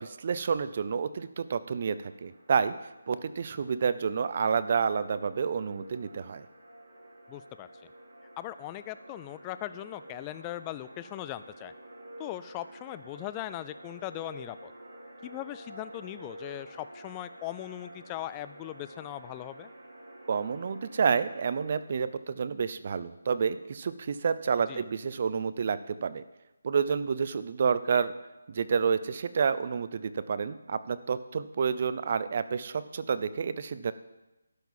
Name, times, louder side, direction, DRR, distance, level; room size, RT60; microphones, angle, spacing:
voice 1, 0.0-2.7 3.1-6.5 20.3-26.2 26.6-28.1 28.5-33.9, right 6 dB, 40° right, 14 dB, 0.5 m, -29 dB
sound 1, 1.8-21.7, right 1 dB, 65° right, 4.9 m, -49 dB
voice 2, 7.3-7.9 8.4-11.7 12.2-14.7 15.2-19.7 24.7-24.8, left 15 dB, 15° left, 13 dB, 0.3 m, -39 dB
12.0 x 6.0 x 7.3 m, 0.99 s
figure-of-eight pair, 165°, 0 cm